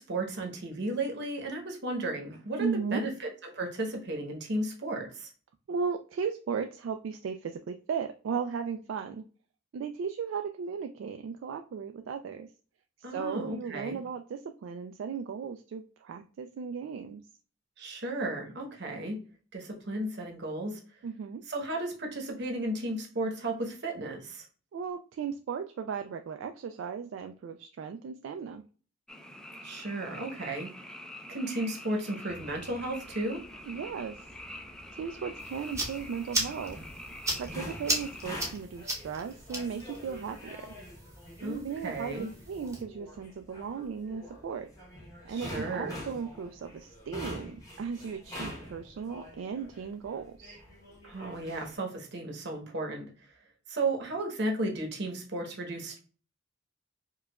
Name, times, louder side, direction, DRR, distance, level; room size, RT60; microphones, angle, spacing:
voice 1, 0.0-5.3 13.0-14.0 17.8-19.2 19.5-20.8 21.5-24.4 29.6-30.7 31.3-33.4 41.4-42.3 45.3-46.0 51.0-53.1 53.7-56.0, right 2 dB, 65° right, 2 dB, 0.9 m, -34 dB
voice 2, 2.6-3.0 5.7-9.2 9.7-12.5 13.1-17.2 21.0-21.4 24.7-28.6 33.7-34.2 34.9-36.8 37.4-40.7 41.4-44.7 45.2-50.6, right 6 dB, 80° right, 6 dB, 0.3 m, -36 dB
Frog, 29.1-38.5, left 1 dB, 5° left, 0.3 m, -46 dB
sound 1, 32.3-51.8, equal, 20° left, 0.9 m, -46 dB
sound 2, 35.4-42.8, right 1 dB, 15° right, 0.8 m, -37 dB
4.7 x 2.3 x 2.2 m, 0.39 s
head